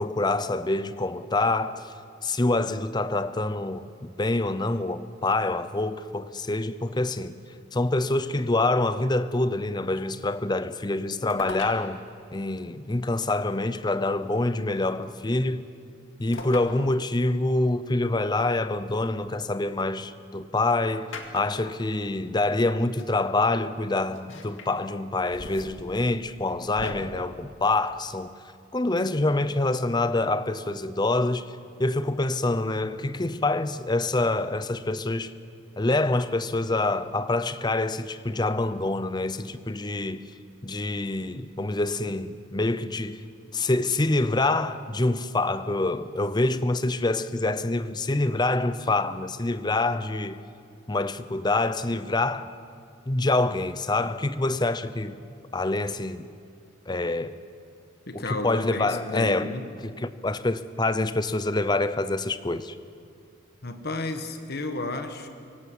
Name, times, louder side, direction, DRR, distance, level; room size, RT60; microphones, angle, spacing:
voice 1, 0.0-1.9 2.2-7.4 7.7-12.0 12.3-15.7 16.2-28.3 28.7-31.5 31.8-35.3 35.8-40.3 40.6-43.2 43.5-50.4 50.9-52.5 53.1-55.1 55.5-56.2 56.9-57.4 58.1-59.5 59.8-62.7, left 2 dB, 20° left, 0.7 m, -26 dB
sound 1, 11.3-11.8 13.1-13.2 14.7-15.1 16.3-16.7 17.2-17.3 18.7-19.8 21.1-21.7 22.7-22.8 23.0-23.1 24.1-24.7 25.1-26.9, left 3 dB, 70° left, 2.2 m, -40 dB
voice 2, 58.1-59.7 63.6-65.3, left 2 dB, 50° left, 1.4 m, -32 dB
25.0 x 17.0 x 8.4 m
head